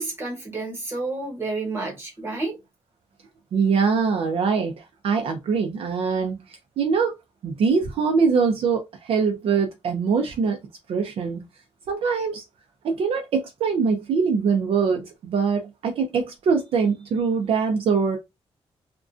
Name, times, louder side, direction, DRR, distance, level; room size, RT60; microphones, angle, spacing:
voice 1, 0.0-2.6, right 3 dB, 20° right, 1.0 m, -30 dB
voice 2, 3.5-6.4 6.8-7.1 7.4-10.6 10.9-11.4 11.9-12.4 12.8-18.2, right 5 dB, 60° right, 0.4 m, -23 dB
2.4 x 2.1 x 2.4 m
wide cardioid pair, 170°, 11 cm